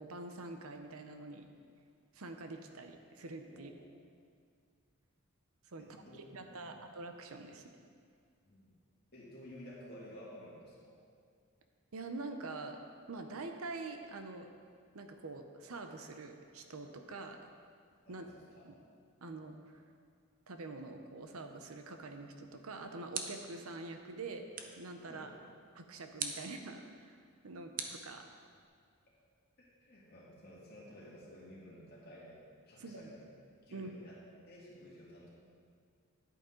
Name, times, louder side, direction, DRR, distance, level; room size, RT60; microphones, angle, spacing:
voice 1, 0.0-1.5 2.1-3.7 5.7-7.6 11.9-12.8 13.1-14.5 14.9-17.5 18.1-18.3 18.6-18.8 19.2-19.8 20.5-24.5 24.8-25.3 25.7-27.2 27.4-28.2 32.8-33.1 33.7-33.9, right 3 dB, 85° right, 6 dB, 0.8 m, -45 dB
voice 2, 3.5-4.0 5.8-6.2 6.6-6.8 8.5-8.7 9.1-10.9 18.1-18.6 25.1-25.3 29.6-32.4 32.7-33.3 33.7-34.2 34.5-35.3, equal, 45° left, -6 dB, 2.5 m, -53 dB
sound 1, 22.4-23.6 24.5-24.9 26.2-26.5 27.8-28.6, right 6 dB, 40° right, 0.7 m, -42 dB
10.5 x 8.7 x 3.9 m, 2.2 s
head